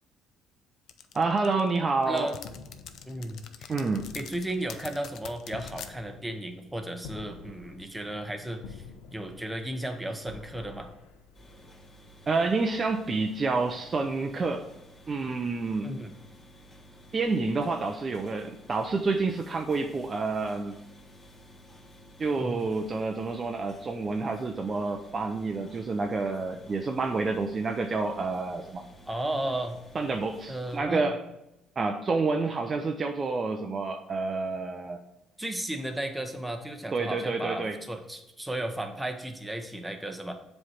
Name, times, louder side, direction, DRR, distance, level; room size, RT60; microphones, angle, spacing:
sound 1, 0.9-5.9, left 8 dB, 65° left, 0.5 m, -44 dB
voice 1, 1.1-2.3 3.7-4.1 12.3-14.6 15.1-15.9 17.1-20.8 22.2-28.8 29.9-31.2 31.8-35.0 36.9-37.8, right 3 dB, 30° right, 5 dB, 0.5 m, -28 dB
voice 2, 2.1-2.4 3.1-3.7 4.1-8.8 9.1-10.9 15.8-16.1 22.4-22.6 29.1-29.8 30.5-31.1 35.4-40.3, right 1 dB, 5° right, 5 dB, 0.8 m, -34 dB
sound 2, 2.4-11.9, left 5 dB, 90° left, 0.8 m, -49 dB
sound 3, 11.3-30.8, equal, 30° left, 1.9 m, -53 dB
7.3 x 3.2 x 5.7 m, 0.91 s
cardioid pair, 110°, 0 cm